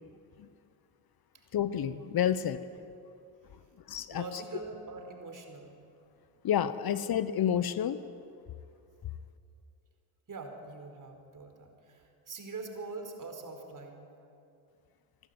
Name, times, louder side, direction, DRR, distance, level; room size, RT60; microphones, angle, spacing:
voice 1, 1.5-2.6 3.9-4.4 6.4-8.0, left 9 dB, 50° left, 14 dB, 1.0 m, -29 dB
voice 2, 4.1-5.8 10.3-14.0, right 3 dB, 40° right, 4 dB, 4.6 m, -43 dB
26.0 x 12.0 x 9.7 m, 2.6 s
hypercardioid pair, 60°, 47 cm